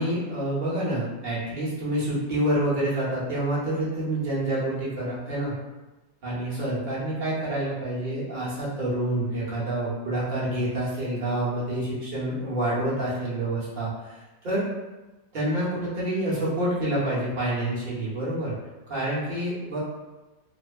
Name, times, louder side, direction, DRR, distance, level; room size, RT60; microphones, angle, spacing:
voice 1, 0.0-5.5 6.2-14.6 15.3-18.5 18.9-19.8, right 1 dB, 50° right, -8 dB, 0.5 m, -27 dB
2.8 x 2.1 x 2.3 m, 1.1 s
omnidirectional pair, 1.9 m